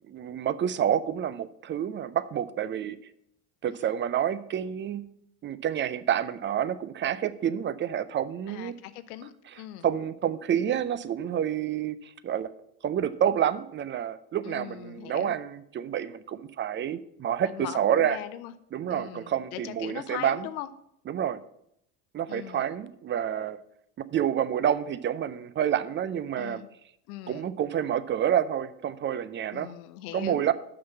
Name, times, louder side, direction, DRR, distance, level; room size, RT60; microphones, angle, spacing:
voice 1, 0.1-3.0 3.6-5.1 5.4-8.7 9.8-12.5 12.8-18.2 18.7-20.5 21.1-21.4 22.1-23.6 24.1-26.6 27.3-29.7 30.1-30.5, right 9 dB, 25° right, 16 dB, 0.5 m, -28 dB
voice 2, 8.5-9.9 14.4-15.4 17.4-18.5 18.9-20.7 22.3-22.7 26.4-26.7 27.1-27.5 29.5-30.5, left 13 dB, 70° left, 13 dB, 0.8 m, -40 dB
6.2 x 6.0 x 7.2 m, 0.74 s
hypercardioid pair, 75°, 46 cm